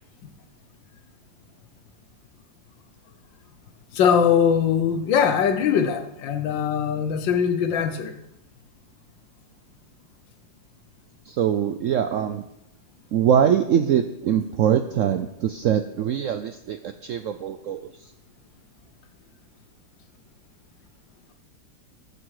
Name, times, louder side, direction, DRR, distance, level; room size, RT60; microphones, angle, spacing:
voice 1, 3.9-8.2, left 7 dB, 85° left, 1.7 m, -21 dB
voice 2, 11.3-12.4 13.1-18.1, right 9 dB, 75° right, 0.7 m, -23 dB
13.0 x 9.9 x 4.8 m
omnidirectional pair, 2.0 m